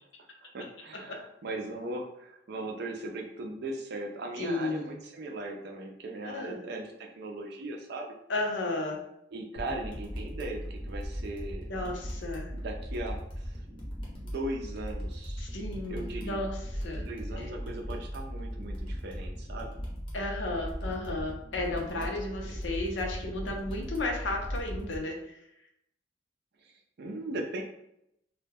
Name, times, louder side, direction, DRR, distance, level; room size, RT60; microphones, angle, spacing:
voice 1, 0.4-8.1 9.3-11.6 12.5-13.8 14.1-15.5 15.9-16.4 16.9-19.7 21.9-22.2 26.6-26.7 27.0-27.6, right 2 dB, 60° right, 1 dB, 0.4 m, -38 dB
voice 2, 4.4-5.0 6.2-6.6 8.3-9.0 11.7-12.5 15.4-17.1 17.3-17.5 20.1-25.4, left 2 dB, 70° left, 1 dB, 0.6 m, -34 dB
sound 1, 9.6-25.0, equal, 25° left, 0.7 m, -38 dB
2.2 x 2.0 x 3.3 m, 0.80 s
head